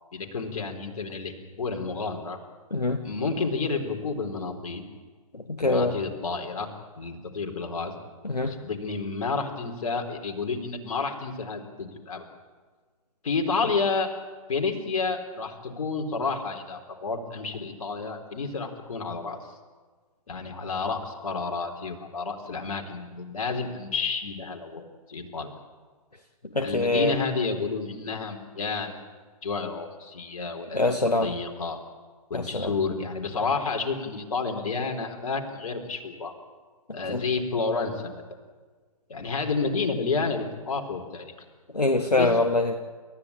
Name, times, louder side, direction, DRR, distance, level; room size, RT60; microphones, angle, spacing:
voice 1, 0.1-2.4 3.0-4.8 5.6-6.7 7.0-7.9 8.4-12.3 13.2-14.1 14.5-19.4 20.3-24.8 25.1-25.5 26.6-29.0 29.4-31.8 32.3-36.3 36.9-38.2 39.1-41.3 42.1-42.4, left 4 dB, 60° left, 3 dB, 4.0 m, -30 dB
voice 2, 5.6-5.9 8.2-8.5 26.5-27.1 30.7-31.3 32.3-32.7 37.1-37.2 41.7-42.8, left 2 dB, 90° left, 6 dB, 1.4 m, -24 dB
29.5 x 14.5 x 8.8 m, 1.5 s
figure-of-eight pair, 125°, 20 cm